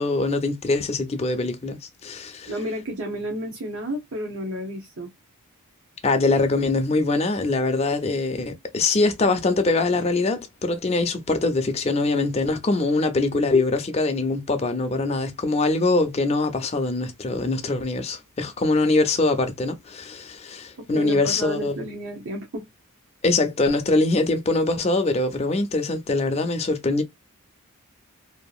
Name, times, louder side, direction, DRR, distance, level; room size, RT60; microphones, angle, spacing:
voice 1, 0.0-1.8 2.0-2.5 6.0-21.8 23.2-27.0, left 3 dB, 30° left, 0.5 m, -23 dB
voice 2, 2.5-5.1 20.8-22.7, right 1 dB, 65° right, 0.8 m, -31 dB
2.7 x 2.4 x 2.3 m
head